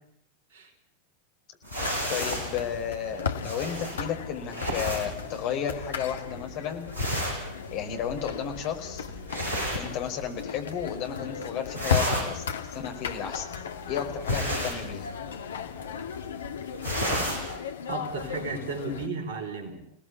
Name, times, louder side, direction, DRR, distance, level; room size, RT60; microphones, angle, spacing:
sound 1, 1.6-10.6 10.9-11.3 11.6-17.6, equal, 85° left, 6.9 m, -33 dB
sound 2, 1.8-19.1, left 6 dB, 65° left, 1.7 m, -37 dB
voice 1, 2.1-6.9 7.7-9.1 9.7-13.5 13.9-15.1, left 8 dB, 40° left, 4 dB, 4.9 m, -33 dB
voice 2, 17.9-19.8, right 3 dB, 55° right, 5 dB, 4.7 m, -34 dB
30.0 x 18.5 x 8.3 m, 0.69 s
figure-of-eight pair, 90°, 0 cm